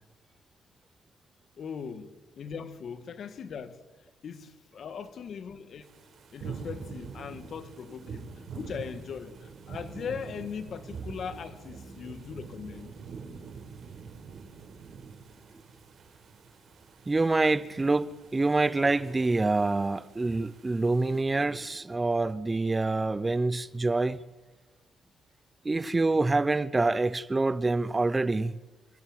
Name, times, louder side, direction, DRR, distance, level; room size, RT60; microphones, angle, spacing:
voice 1, 1.6-3.8 4.2-5.9 6.3-13.0, left 7 dB, 55° left, 1.9 m, -40 dB
sound 1, 5.8-21.2, right 5 dB, 60° right, 4.7 m, -45 dB
voice 2, 17.1-24.2 25.6-28.6, right 3 dB, 20° right, 0.7 m, -26 dB
28.0 x 15.5 x 8.9 m
cardioid pair, 90°, 0 cm